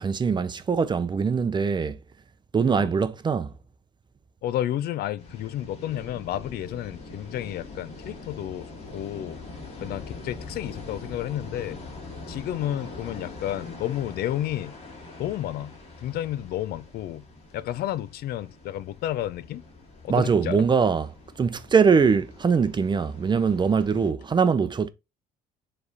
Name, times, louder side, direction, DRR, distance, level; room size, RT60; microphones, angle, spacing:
voice 1, 0.0-2.0 2.5-3.5 20.1-21.1 21.4-24.9, right 5 dB, 25° right, 0.6 m, -22 dB
voice 2, 4.4-9.4 9.8-11.8 12.3-14.7 15.2-17.2 17.5-19.6 20.0-20.7 23.9-24.1, left 12 dB, 70° left, 0.5 m, -31 dB
sound 1, 5.2-24.1, left 2 dB, 40° left, 2.5 m, -43 dB
7.0 x 3.3 x 4.1 m
cardioid pair, 110°, 17 cm